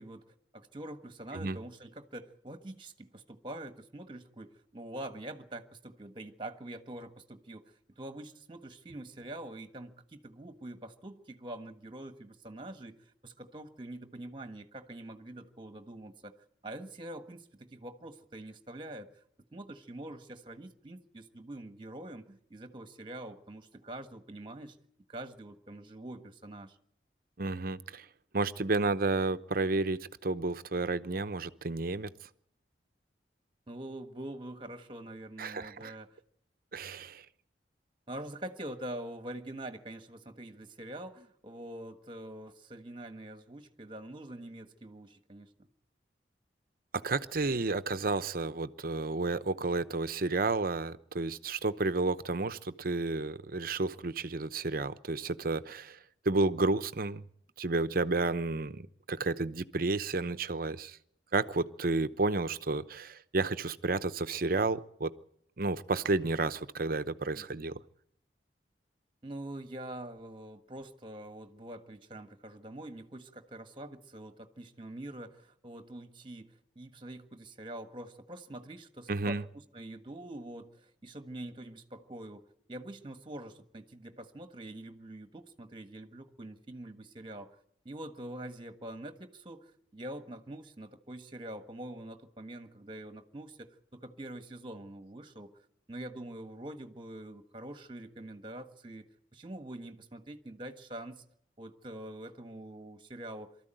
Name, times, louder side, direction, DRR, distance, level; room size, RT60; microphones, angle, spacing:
voice 1, 0.0-7.6 7.9-16.3 16.6-19.2 19.5-24.7 25.1-26.8 33.7-36.2 38.1-45.7 67.3-67.5 69.2-79.4 79.7-82.4 82.7-87.5 87.8-95.5 95.9-99.1 99.3-101.2 101.6-103.5, right 1 dB, 30° right, 1.5 m, -45 dB
voice 2, 27.4-28.0 28.3-32.1 35.4-35.9 36.7-37.2 46.9-56.0 56.2-57.2 57.6-61.0 61.3-65.1 65.6-67.8 79.1-79.4, right 3 dB, 55° right, 0.8 m, -31 dB
23.5 x 13.5 x 9.1 m
head